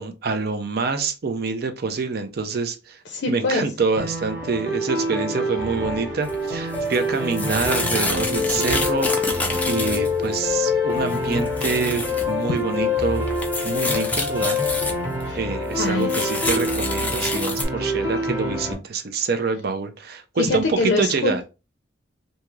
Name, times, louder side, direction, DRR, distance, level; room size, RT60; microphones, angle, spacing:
voice 1, 0.0-3.0 3.3-13.3 13.6-14.6 15.3-21.4, right 4 dB, 55° right, 0.5 m, -26 dB
voice 2, 3.1-3.6 12.5-12.6 15.2-15.4 15.8-16.1 20.4-21.4, left 3 dB, 65° left, 0.5 m, -24 dB
sound 1, 4.0-18.7, left 2 dB, 15° right, 0.9 m, -26 dB
sound 2, 6.2-6.4 6.7-10.5 10.9-12.3 12.6-12.7 13.0-15.3 15.7-17.6, left 2 dB, 10° left, 0.5 m, -28 dB
2.7 x 2.4 x 3.0 m
head